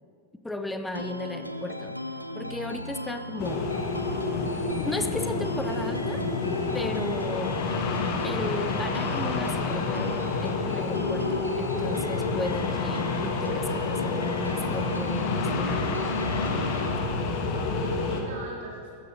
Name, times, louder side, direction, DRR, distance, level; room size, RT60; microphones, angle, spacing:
voice 1, 0.4-2.0 2.3-3.7 4.8-6.2 6.7-7.7 8.2-16.1, left 2 dB, 5° left, 8 dB, 0.5 m, -35 dB
sound 1, 0.9-16.9, left 1 dB, 90° left, 0.4 m, -36 dB
sound 2, 3.4-18.2, left 4 dB, 45° left, 1.0 m, -29 dB
voice 2, 16.8-19.0, right 3 dB, 50° right, -1 dB, 1.3 m, -39 dB
14.5 x 10.0 x 2.7 m, 2.5 s
figure-of-eight pair, 90°, 0 cm